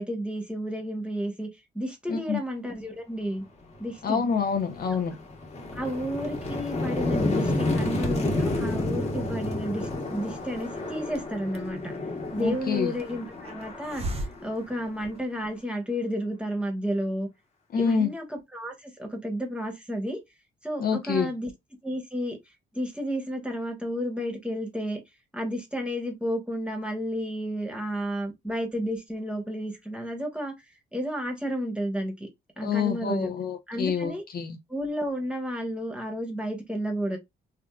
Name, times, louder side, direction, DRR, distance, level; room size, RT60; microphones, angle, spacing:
voice 1, 0.0-1.5 1.7-3.4 3.8-4.2 5.7-12.0 12.3-14.0 14.4-17.3 17.8-20.2 20.6-21.5 21.8-22.4 22.7-25.0 25.3-30.5 30.9-32.3 32.6-33.3 33.7-34.2 34.7-37.2, equal, 5° right, 1.1 m, -31 dB
voice 2, 2.1-2.4 4.0-5.1 12.4-12.9 17.7-18.1 20.8-21.3 32.6-34.6, left 6 dB, 50° left, 0.6 m, -27 dB
sound 1, 3.7-3.9 4.3-15.1, left 2 dB, 30° left, 1.2 m, -30 dB
Hiss, 10.1-15.6, right 1 dB, 30° right, 0.6 m, -41 dB
3.5 x 2.4 x 2.3 m
cardioid pair, 90°, 20 cm